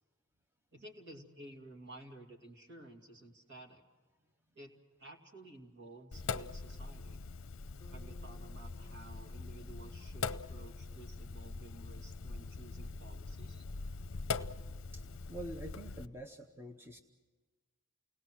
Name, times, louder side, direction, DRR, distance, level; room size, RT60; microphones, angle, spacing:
voice 1, 0.7-3.8 4.5-4.7 5.0-7.2 7.9-13.6, right 2 dB, 55° right, 3 dB, 2.6 m, -53 dB
Sink (filling or washing), 6.1-16.0, left 4 dB, 60° left, 0.7 m, -42 dB
Bass guitar, 7.8-12.2, left 1 dB, 15° left, 0.8 m, -62 dB
voice 2, 15.3-17.0, right 1 dB, 10° right, 4 dB, 0.8 m, -46 dB
29.0 x 18.5 x 6.2 m, 1.3 s
head